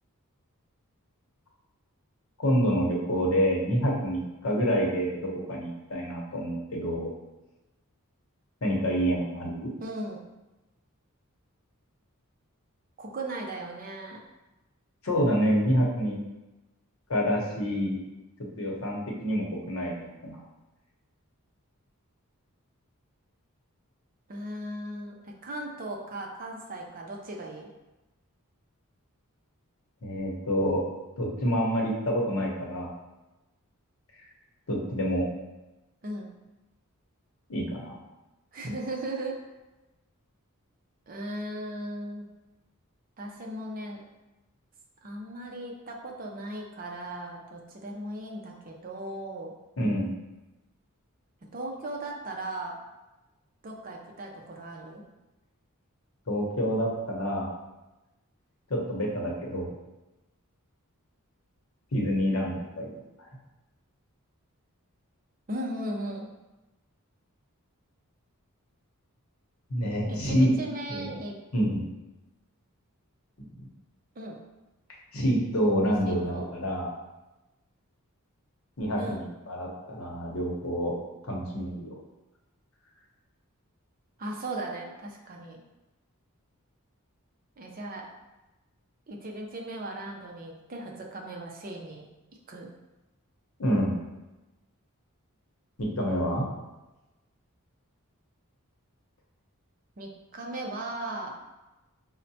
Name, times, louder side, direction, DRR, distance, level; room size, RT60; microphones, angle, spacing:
voice 1, 2.4-7.1 8.6-9.7 15.0-16.2 17.1-18.0 18.6-20.4 30.0-30.8 31.2-32.9 34.7-35.3 37.5-37.9 49.8-50.1 56.3-57.5 58.7-59.7 61.9-62.9 63.2-63.3 69.7-70.6 70.9-71.1 71.5-71.8 73.6-73.7 75.1-76.9 78.8-81.0 81.2-82.0 93.6-94.0 95.8-96.4, equal, 65° left, -2 dB, 0.8 m, -27 dB
voice 2, 9.8-10.2 13.0-14.2 24.3-27.7 36.0-36.3 38.5-39.4 41.1-42.2 43.2-44.0 45.0-49.5 51.5-52.8 53.6-55.0 65.5-66.3 70.1-71.3 74.2-74.4 76.0-76.5 79.0-79.2 84.2-85.6 87.6-88.1 89.1-92.0 92.5-92.7 100.0-101.4, right 1 dB, 40° right, 0 dB, 0.5 m, -37 dB
5.4 x 2.1 x 2.7 m, 1.0 s
head